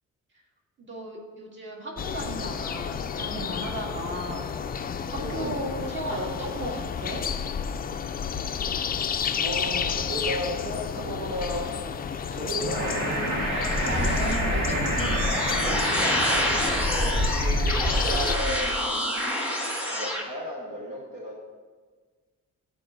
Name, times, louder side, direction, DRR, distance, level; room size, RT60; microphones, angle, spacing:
voice 1, 0.8-4.5 4.9-7.2 13.8-15.6, right 1 dB, 40° right, -1 dB, 1.9 m, -35 dB
sound 1, 2.0-18.4, left 7 dB, 30° left, 0.4 m, -31 dB
voice 2, 5.1-5.5 9.4-13.2 17.3-18.8 19.9-21.4, equal, 70° right, -2 dB, 1.4 m, -34 dB
sound 2, 12.5-20.2, equal, 5° right, 1.4 m, -27 dB
sound 3, 12.6-18.1, right 1 dB, 85° right, 1.7 m, -30 dB
13.0 x 4.6 x 2.6 m, 1.4 s
cardioid pair, 90°, 30 cm